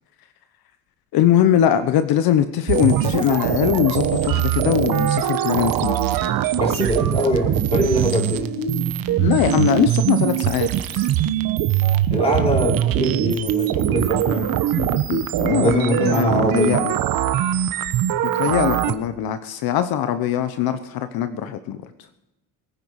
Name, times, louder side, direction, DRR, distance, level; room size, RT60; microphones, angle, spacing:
voice 1, 1.1-6.0 8.6-8.8 9.2-10.7 10.9-11.1 14.7-16.9 18.3-21.8, left 10 dB, 75° left, 10 dB, 1.1 m, -21 dB
sound 1, 2.7-18.9, right 11 dB, 65° right, 1.2 m, -22 dB
voice 2, 6.6-8.5 12.1-14.5 15.6-16.8, equal, 15° left, -1 dB, 5.0 m, -22 dB
22.5 x 9.7 x 4.8 m, 0.94 s
cardioid pair, 145°, 37 cm